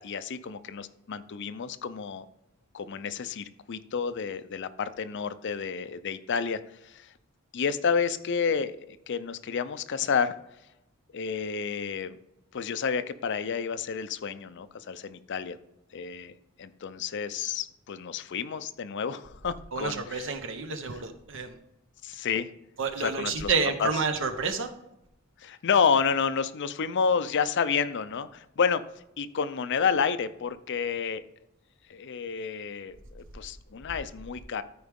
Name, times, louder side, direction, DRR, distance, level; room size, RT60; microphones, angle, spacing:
voice 1, 0.0-2.2 2.7-7.1 7.5-10.4 11.1-12.2 12.5-15.6 15.9-16.3 16.6-20.3 22.0-22.5 23.0-23.5 23.8-23.9 25.4-28.8 29.2-31.2 31.9-34.6, left 6 dB, 55° left, 13 dB, 0.5 m, -30 dB
voice 2, 19.7-21.5 22.8-24.7, right 5 dB, 60° right, 7 dB, 1.0 m, -29 dB
13.5 x 4.8 x 3.6 m, 0.87 s
head